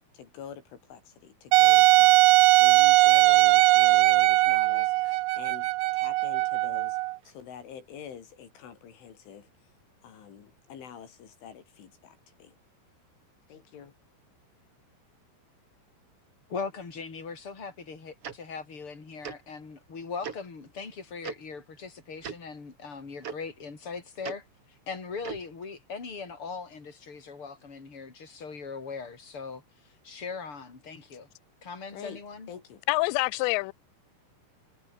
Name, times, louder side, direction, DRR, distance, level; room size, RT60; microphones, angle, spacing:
voice 1, 0.1-2.2 2.6-7.0 7.3-9.5 10.0-12.6 13.5-13.9 31.9-32.2 32.5-32.8, left 8 dB, 70° left, 5.9 m, -46 dB
Wind instrument woodwind instrument, 1.5-7.2, right 21 dB, 85° right, 2.7 m, -20 dB
voice 2, 16.5-24.5 24.9-31.3 31.6-32.5, left 5 dB, 25° left, 5.7 m, -40 dB
Tick-tock, 18.2-18.3 19.2-19.4 20.2-20.4 21.2-21.3 22.2-22.4 23.2-23.3 24.2-24.3 25.2-25.4, right 7 dB, 50° right, 1.9 m, -37 dB
voice 3, 32.9-33.7, left 24 dB, 90° left, 2.5 m, -26 dB
omnidirectional pair, 5.8 m